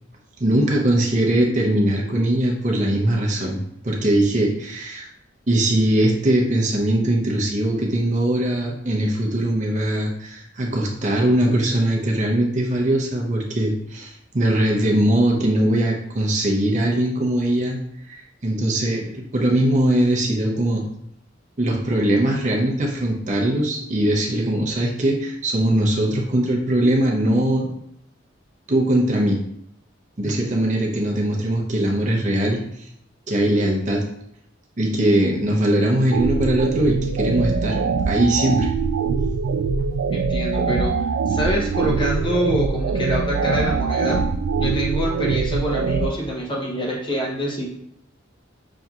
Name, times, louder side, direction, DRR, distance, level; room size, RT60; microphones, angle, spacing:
voice 1, 0.4-3.6 3.8-5.1 5.5-17.8 18.1-20.9 21.6-27.7 28.7-29.4 30.2-32.9 33.3-34.1 34.8-38.7, right 1 dB, 40° right, -1 dB, 0.7 m, -21 dB
sound 1, 36.1-46.1, right 5 dB, 85° right, 0.3 m, -23 dB
voice 2, 40.1-40.9 41.3-44.3 44.6-47.7, equal, 25° left, -2 dB, 0.8 m, -25 dB
6.0 x 2.7 x 2.4 m, 0.73 s
head